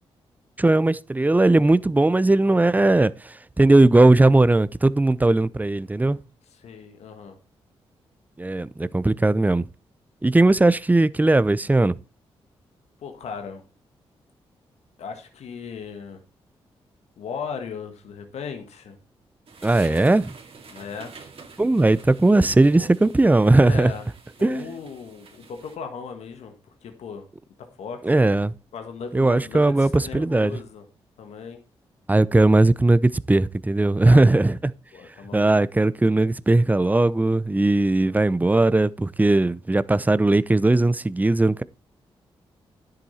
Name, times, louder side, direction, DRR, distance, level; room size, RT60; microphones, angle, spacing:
voice 1, 0.6-6.2 8.4-9.7 10.2-12.0 19.6-20.3 21.6-23.9 24.4-24.8 28.0-28.5 29.1-30.6 32.1-34.6 35.3-41.6, right 2 dB, 15° right, 0.6 m, -18 dB
voice 2, 6.5-7.4 13.0-13.6 15.0-16.2 17.2-19.0 20.7-21.1 22.8-22.9 23.7-24.0 24.4-27.3 27.8-28.0 28.7-30.8 31.2-31.6 34.0-34.2 34.9-35.5, left 6 dB, 80° left, 1.5 m, -37 dB
sound 1, 19.5-25.8, right 4 dB, 60° right, 2.4 m, -48 dB
10.5 x 7.8 x 4.2 m
supercardioid pair, 55°, 11 cm